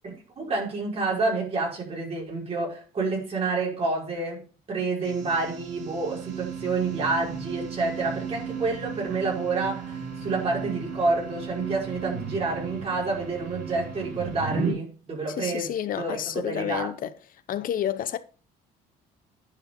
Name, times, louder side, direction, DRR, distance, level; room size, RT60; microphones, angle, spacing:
voice 1, 0.0-15.7 15.9-16.2 16.5-16.9, right 3 dB, 35° right, 5.4 m, -28 dB
sound 1, 5.0-14.7, right 5 dB, 75° right, 4.7 m, -35 dB
voice 2, 15.4-17.1 17.5-18.2, left 10 dB, 55° left, 0.8 m, -29 dB
10.5 x 5.9 x 3.8 m
cardioid pair, 110°, 17 cm